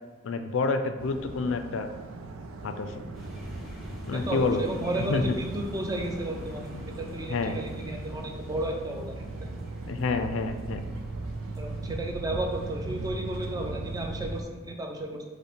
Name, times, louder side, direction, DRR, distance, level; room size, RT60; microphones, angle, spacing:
voice 1, 0.2-1.9 2.6-3.0 4.1-4.6 4.9-5.3 6.7-6.8 7.3-7.6 9.9-10.8, left 4 dB, 75° left, 8 dB, 0.4 m, -28 dB
sound 1, 1.0-14.4, right 2 dB, 90° right, 0.4 m, -39 dB
sound 2, 3.1-13.7, equal, ahead, 0.8 m, -45 dB
voice 2, 4.1-6.7 7.0-9.5 11.6-15.2, right 1 dB, 20° right, 2 dB, 0.4 m, -33 dB
5.4 x 2.1 x 4.4 m, 1.4 s
head